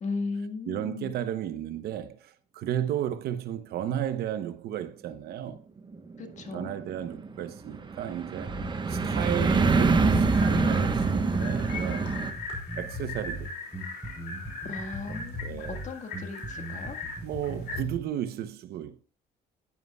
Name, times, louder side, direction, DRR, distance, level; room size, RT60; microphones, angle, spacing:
voice 1, 0.0-1.1 6.2-6.7 14.6-17.0, left 4 dB, 45° left, 1.6 m, -36 dB
voice 2, 0.7-5.6 6.5-8.5 8.9-12.1 12.8-13.5 15.1-15.2 15.4-15.8 17.2-19.0, right 10 dB, 70° right, 0.8 m, -33 dB
sound 1, 5.9-12.3, right 4 dB, 25° right, 1.0 m, -25 dB
Bass guitar, 8.5-18.0, equal, ahead, 3.6 m, -39 dB
sound 2, 10.3-17.8, left 3 dB, 70° left, 3.4 m, -40 dB
10.5 x 9.5 x 2.3 m
cardioid pair, 110°, 17 cm